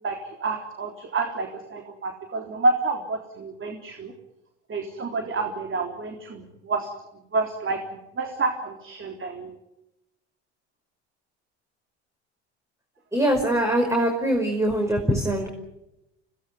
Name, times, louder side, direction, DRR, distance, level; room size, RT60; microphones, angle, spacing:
voice 1, 0.0-4.1 4.7-6.9 7.3-7.8 8.2-9.5, right 3 dB, 35° right, 4 dB, 3.7 m, -28 dB
voice 2, 13.1-15.5, right 1 dB, 10° right, 2 dB, 5.4 m, -23 dB
25.5 x 18.0 x 9.7 m, 0.91 s
hypercardioid pair, 70°, 35 cm